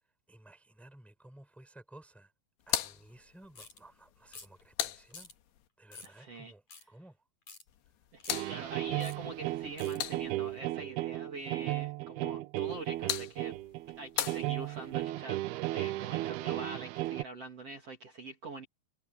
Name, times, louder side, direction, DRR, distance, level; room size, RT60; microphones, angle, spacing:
voice 1, 0.3-2.3 2.7-5.3 5.8-7.2, right 1 dB, ahead, 3.9 m, -55 dB
sound 1, 2.6-5.7 7.7-10.6 12.6-15.1, left 13 dB, 85° left, 3.5 m, -40 dB
sound 2, 3.6-3.8 4.3-4.6 5.1-5.3 5.9-6.2 6.7-6.8 7.5-7.6 8.2-8.4 9.0-9.2 9.8-10.0, left 4 dB, 45° left, 8.1 m, -49 dB
voice 2, 6.0-6.5 8.1-13.6 14.0-18.7, right 2 dB, 40° right, 3.5 m, -44 dB
sound 3, 8.3-17.2, right 17 dB, 80° right, 2.5 m, -35 dB
omnidirectional pair, 4.8 m